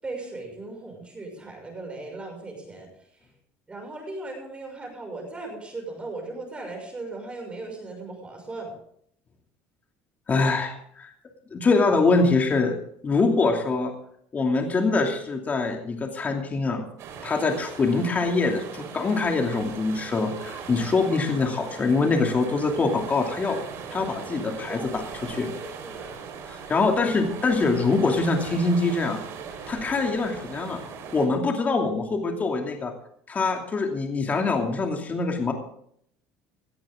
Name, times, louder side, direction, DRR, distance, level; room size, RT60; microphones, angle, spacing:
voice 1, 0.0-2.9 3.7-8.7 24.7-26.2, right 2 dB, 20° right, 1 dB, 6.4 m, -38 dB
voice 2, 10.3-11.1 11.5-12.7 13.0-13.9 14.3-16.9 17.2-23.6 23.9-25.5 26.5-29.2 29.7-30.8 31.1-32.9 33.3-35.5, left 3 dB, 30° left, 3 dB, 2.7 m, -24 dB
sound 1, 17.0-31.3, right 6 dB, 60° right, 4.6 m, -39 dB
18.5 x 13.5 x 3.8 m, 0.67 s
supercardioid pair, 110°, 6 cm